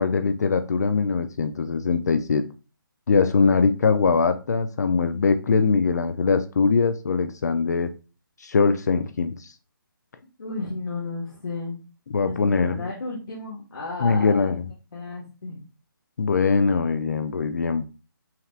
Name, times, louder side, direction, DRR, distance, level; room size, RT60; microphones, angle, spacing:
voice 1, 0.0-2.4 3.1-7.9 8.4-9.5 12.1-12.8 14.0-14.6 16.2-17.8, left 4 dB, 50° left, 9 dB, 0.5 m, -22 dB
voice 2, 10.4-11.8 12.2-14.6 14.9-15.7, left 3 dB, 70° left, -5 dB, 1.7 m, -33 dB
5.7 x 3.2 x 2.4 m, 0.32 s
hypercardioid pair, 165°, 12 cm